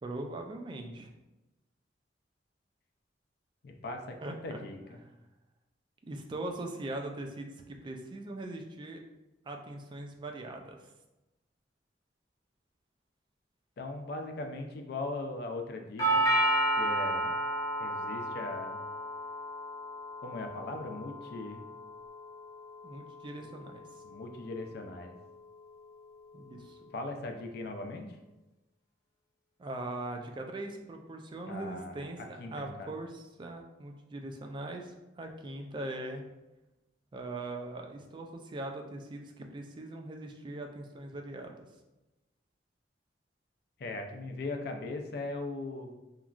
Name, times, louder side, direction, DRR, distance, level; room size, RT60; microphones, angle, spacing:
voice 1, 0.0-1.1 4.2-4.6 6.1-9.0 9.4-10.9 22.8-23.8 26.3-26.8 29.6-36.2 37.1-41.7, right 2 dB, 25° right, 3 dB, 0.3 m, -41 dB
voice 2, 3.6-5.0 13.8-16.3 16.8-17.4 17.8-18.8 20.2-21.6 24.0-25.1 26.9-28.1 31.5-32.9 43.8-45.9, left 2 dB, 60° left, 4 dB, 0.4 m, -39 dB
Doorbell, 16.0-24.0, right 1 dB, 20° left, 0.6 m, -32 dB
2.9 x 2.3 x 2.4 m, 1.0 s
head